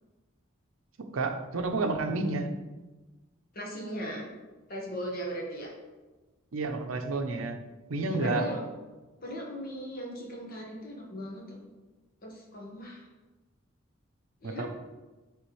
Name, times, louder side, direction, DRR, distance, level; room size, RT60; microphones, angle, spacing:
voice 1, 1.1-2.5 6.5-7.6 7.9-8.4 14.4-14.7, right 3 dB, 80° right, 6 dB, 0.6 m, -30 dB
voice 2, 3.5-4.3 4.7-5.7 8.1-8.6 9.2-11.7 12.2-13.0 14.4-14.7, equal, 45° left, -2 dB, 1.3 m, -38 dB
9.2 x 3.4 x 3.1 m, 1.2 s
head